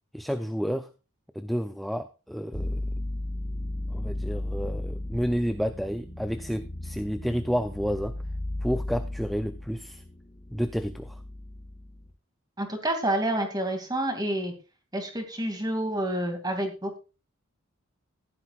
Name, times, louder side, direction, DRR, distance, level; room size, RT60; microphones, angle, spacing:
voice 1, 0.1-0.9 1.3-2.8 3.9-8.2 8.6-10.0 10.5-11.2, equal, ahead, 8 dB, 0.4 m, -30 dB
sound 1, 2.5-12.1, left 1 dB, 20° left, 2.4 m, -35 dB
voice 2, 12.6-14.5 14.9-17.0, right 1 dB, 20° right, 5 dB, 2.4 m, -28 dB
15.0 x 11.5 x 2.4 m, 0.32 s
head